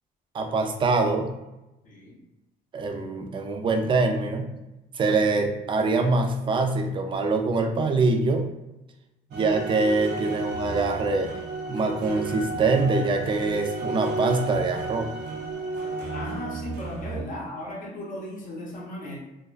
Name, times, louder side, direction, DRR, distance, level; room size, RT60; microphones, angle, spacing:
voice 1, 0.3-1.3 2.7-4.5 4.9-8.5 9.3-11.3 11.7-15.1, right 3 dB, 30° right, 5 dB, 0.3 m, -24 dB
voice 2, 1.8-2.2 16.1-19.2, left 1 dB, 55° left, -2 dB, 0.7 m, -36 dB
sound 1, 9.3-17.2, right 3 dB, 85° right, 0.5 m, -33 dB
2.3 x 2.2 x 2.3 m, 0.96 s
cardioid pair, 110°, 17 cm